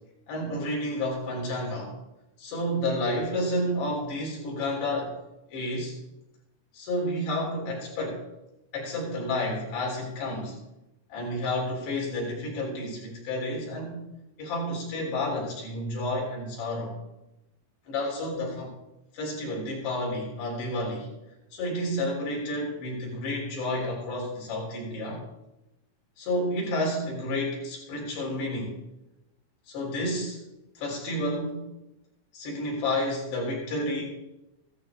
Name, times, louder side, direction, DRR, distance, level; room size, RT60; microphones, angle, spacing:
voice 1, 0.3-1.9 2.4-5.2 5.5-5.9 6.7-8.2 8.7-10.6 11.1-14.0 14.4-17.0 17.9-18.7 19.1-21.1 21.5-25.2 26.2-28.8 29.7-30.4 30.8-31.6 32.3-34.0, left 1 dB, 80° left, -2 dB, 6.1 m, -30 dB
16.0 x 14.0 x 3.9 m, 0.92 s
omnidirectional pair, 4.6 m